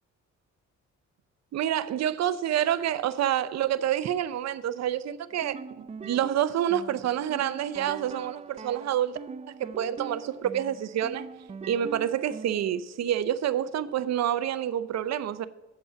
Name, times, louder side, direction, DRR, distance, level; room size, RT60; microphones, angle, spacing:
voice 1, 1.5-9.2 9.5-11.3 11.7-15.4, right 10 dB, 60° right, 0.6 m, -28 dB
sound 1, 5.3-12.8, right 5 dB, 20° right, 0.4 m, -42 dB
7.9 x 5.4 x 6.8 m
cardioid pair, 90°, 30 cm